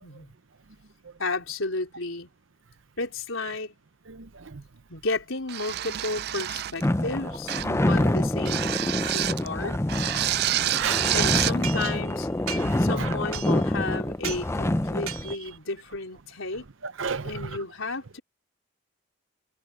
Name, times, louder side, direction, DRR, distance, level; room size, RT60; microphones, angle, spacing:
voice 1, 0.0-0.3 1.2-2.3 3.0-3.7 4.9-7.6 7.9-10.1 11.1-12.3 12.5-16.6 17.2-18.2, left 3 dB, 75° left, 4.0 m, -33 dB
voice 2, 4.1-4.6 7.7-8.0 9.6-9.8 10.4-11.1 11.8-11.9 12.5-13.2 16.8-17.6, right 5 dB, 65° right, 0.8 m, -35 dB
sound 1, 5.5-6.9 7.5-7.8 8.5-9.5 9.9-11.6, right 13 dB, 50° right, 0.3 m, -28 dB
sound 2, 6.8-15.3, left 1 dB, 15° left, 0.5 m, -26 dB
sound 3, 10.8-12.2 12.5-12.9 13.3-13.8 14.2-14.5 15.1-15.6, right 9 dB, 85° right, 3.7 m, -37 dB
head